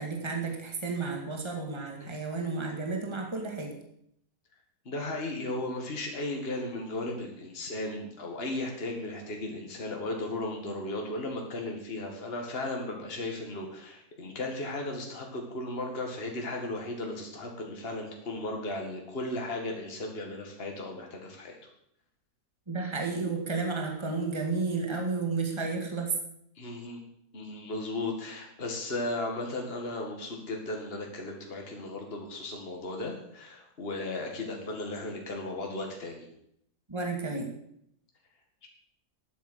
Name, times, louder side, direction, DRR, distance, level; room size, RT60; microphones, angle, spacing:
voice 1, 0.0-3.7 22.7-26.1 36.9-37.5, right 4 dB, 15° right, 2 dB, 2.2 m, -32 dB
voice 2, 4.9-21.6 26.6-27.0 27.3-36.3 38.6-38.7, left 2 dB, 40° left, 1 dB, 2.3 m, -36 dB
12.0 x 9.3 x 8.1 m, 0.74 s
omnidirectional pair, 1.6 m